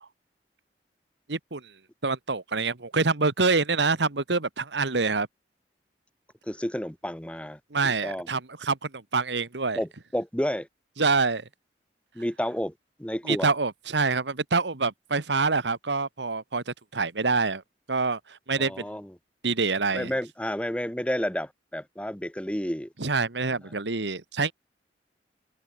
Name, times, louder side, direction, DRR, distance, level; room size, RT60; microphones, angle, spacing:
voice 1, 1.3-1.6 2.0-5.3 7.7-9.8 11.0-11.4 13.3-17.6 17.9-18.8 19.4-20.1 23.0-24.5, right 4 dB, 85° right, 1.6 m, -26 dB
voice 2, 6.5-8.3 9.7-10.7 12.1-12.7 13.0-13.5 18.6-19.1 19.9-22.9, equal, 5° left, 1.2 m, -31 dB
open air
head